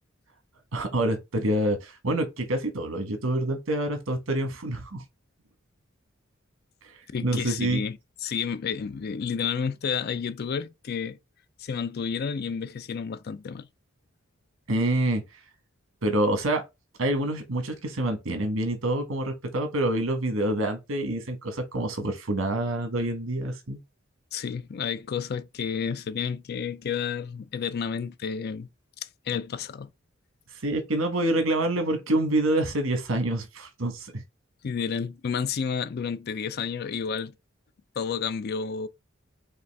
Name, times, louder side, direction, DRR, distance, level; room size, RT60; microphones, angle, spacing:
voice 1, 0.7-5.0 7.2-7.8 14.7-15.2 16.0-16.6 17.0-23.8 30.6-34.2, right 1 dB, 90° right, 1.2 m, -27 dB
voice 2, 7.1-11.2 11.6-13.7 24.3-28.7 29.3-29.9 34.6-37.3 38.0-38.9, left 6 dB, 50° left, 0.4 m, -31 dB
5.1 x 2.4 x 3.4 m
head